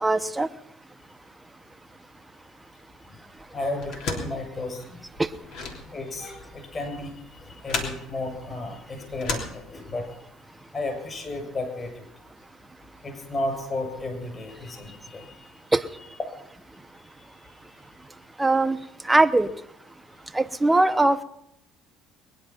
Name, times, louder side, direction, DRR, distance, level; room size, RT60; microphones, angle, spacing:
voice 1, 0.0-0.5 5.2-5.3 15.7-15.8 18.4-18.8 19.1-19.5 20.3-21.2, right 2 dB, 10° right, 10 dB, 1.0 m, -20 dB
voice 2, 3.5-5.0 5.9-10.2 10.7-12.1 13.0-15.5 17.0-17.8, left 2 dB, 30° left, 4 dB, 7.5 m, -33 dB
sound 1, 3.8-10.2, left 3 dB, 70° left, 3.3 m, -35 dB
21.5 x 10.5 x 5.9 m, 0.80 s
supercardioid pair, 85°, 0 cm